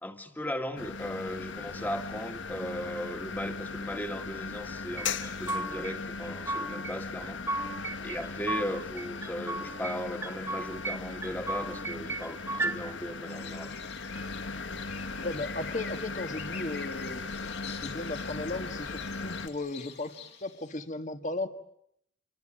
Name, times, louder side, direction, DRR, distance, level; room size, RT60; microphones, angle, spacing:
voice 1, 0.0-7.4 8.0-13.8, equal, 10° left, 1.9 m, -37 dB
sound 1, 0.8-19.5, left 4 dB, 90° left, 1.3 m, -38 dB
sound 2, 5.0-5.9 6.2-6.9 7.2-8.7 9.0-10.0 10.2-11.0 11.2-12.7, right 2 dB, 15° right, 1.5 m, -34 dB
sound 3, 13.3-20.8, left 7 dB, 70° left, 5.3 m, -46 dB
voice 2, 15.2-20.1 20.4-21.5, left 2 dB, 40° left, 1.6 m, -36 dB
29.0 x 25.0 x 7.7 m
head